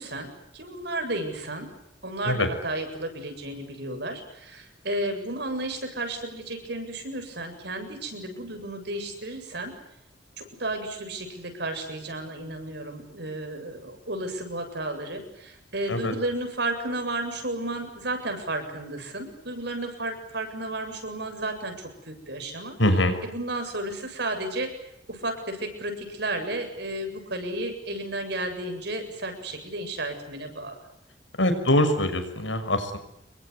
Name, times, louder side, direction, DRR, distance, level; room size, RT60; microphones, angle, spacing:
voice 1, 0.0-1.7 2.0-9.7 10.4-22.8 23.2-24.8 25.1-30.7, right 2 dB, 60° right, 6 dB, 7.8 m, -33 dB
voice 2, 22.8-23.2 31.4-33.0, left 1 dB, 85° left, 8 dB, 6.3 m, -23 dB
29.0 x 23.0 x 8.3 m, 0.80 s
head